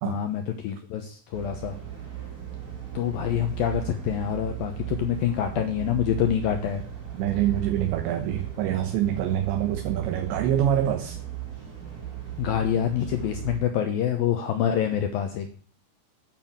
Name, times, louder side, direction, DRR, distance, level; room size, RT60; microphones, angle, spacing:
voice 1, 0.0-1.8 2.9-6.8 12.4-15.6, left 10 dB, 75° left, 6 dB, 2.2 m, -26 dB
sound 1, 1.3-13.6, right 11 dB, 20° right, 3.4 m, -37 dB
voice 2, 7.1-11.2, right 10 dB, 75° right, 5 dB, 3.3 m, -25 dB
10.0 x 9.2 x 7.5 m, 0.43 s
omnidirectional pair, 5.4 m